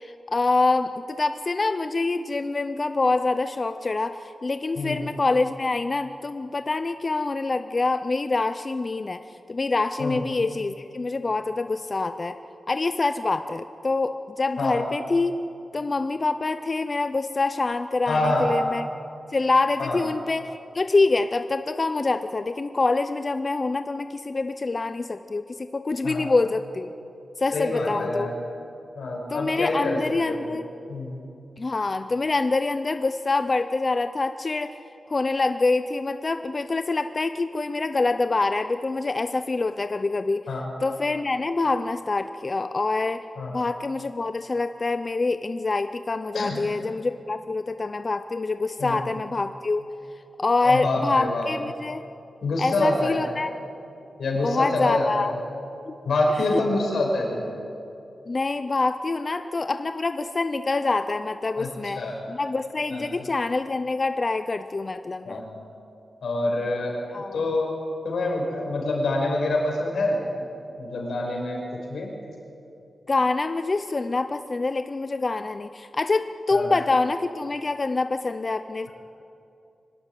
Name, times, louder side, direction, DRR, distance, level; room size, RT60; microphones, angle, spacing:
voice 1, 0.0-9.2 9.5-12.4 12.7-15.3 15.7-18.8 19.3-26.9 27.4-28.3 29.3-30.7 31.6-34.8 35.1-40.5 40.8-43.2 43.5-49.8 50.4-52.0 52.6-53.5 54.4-55.3 55.9-56.0 58.3-62.0 62.3-65.4 67.1-67.4 73.1-78.9, left 3 dB, 30° left, 10 dB, 0.5 m, -25 dB
voice 2, 18.1-18.5 19.8-20.0 26.0-26.3 27.5-28.3 29.0-30.0 30.2-30.6 30.9-31.2 40.5-40.7 43.4-43.6 46.3-46.6 48.8-49.0 50.6-51.5 52.4-53.2 54.2-55.3 56.0-57.5 61.6-61.7 62.0-62.2 62.9-63.3 65.2-65.7 66.2-67.7 68.0-70.5 70.8-72.1 76.5-76.7, left 2 dB, 85° left, -1 dB, 5.7 m, -26 dB
24.0 x 12.5 x 10.0 m, 2.7 s
wide cardioid pair, 170°, 0 cm